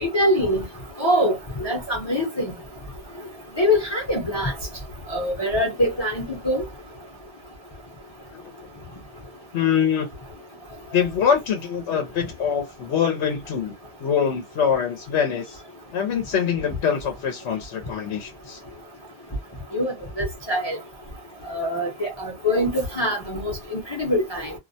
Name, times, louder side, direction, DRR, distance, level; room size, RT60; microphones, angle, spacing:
voice 1, 0.0-0.6 1.0-2.5 3.6-4.5 5.1-6.6 19.7-20.8 21.5-24.5, equal, 25° left, 0.7 m, -24 dB
voice 2, 9.5-10.1 10.9-13.7 14.0-15.6 15.9-18.6, left 7 dB, 75° left, 0.9 m, -24 dB
2.4 x 2.1 x 2.6 m
omnidirectional pair, 1.2 m